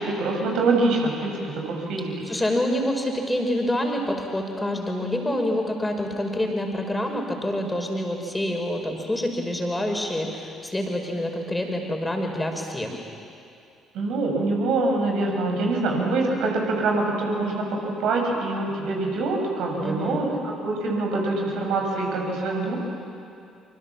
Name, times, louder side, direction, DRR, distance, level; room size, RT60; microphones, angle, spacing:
voice 1, 0.0-2.4 13.9-22.8, right 3 dB, 60° right, 1 dB, 5.9 m, -25 dB
voice 2, 2.3-13.0 19.8-20.2, left 1 dB, 10° left, 2 dB, 5.3 m, -27 dB
26.5 x 26.0 x 7.3 m, 2.5 s
figure-of-eight pair, 50°, 0 cm